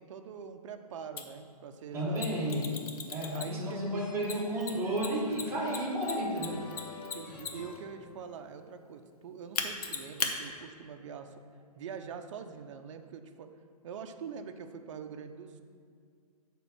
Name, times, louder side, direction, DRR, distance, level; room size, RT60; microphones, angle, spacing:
voice 1, 0.0-2.2 3.3-4.0 7.1-11.4 11.7-13.5 13.8-15.6, right 6 dB, 50° right, 6 dB, 0.6 m, -44 dB
Mechanisms, 1.2-1.3 2.1-3.7 4.2-7.8 9.5-10.3, left 6 dB, 70° left, 0.9 m, -36 dB
voice 2, 1.9-2.7 3.1-6.6, equal, 15° right, -5 dB, 1.4 m, -32 dB
sound 1, 3.3-8.7, left 4 dB, 25° left, 0.6 m, -51 dB
8.5 x 3.7 x 6.0 m, 2.1 s
hypercardioid pair, 150°, 20 cm